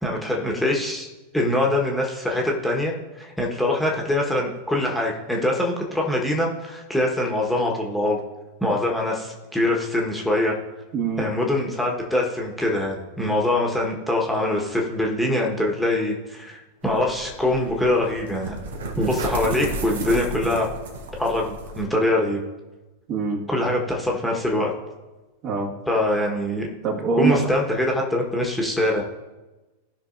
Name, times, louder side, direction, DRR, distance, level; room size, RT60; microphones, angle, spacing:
voice 1, 0.0-1.1 1.3-8.2 8.6-10.5 11.2-18.6 18.9-20.7 21.2-22.4 23.5-24.7 25.9-26.7 27.2-29.0, left 1 dB, ahead, -2 dB, 1.4 m, -23 dB
voice 2, 10.9-11.3 23.1-23.4 25.4-25.7 26.8-27.4, right 4 dB, 40° right, -1 dB, 1.8 m, -23 dB
sound 1, 16.8-21.9, right 2 dB, 60° right, 1.2 m, -33 dB
17.0 x 5.9 x 2.6 m, 1.2 s
figure-of-eight pair, 90°, 0 cm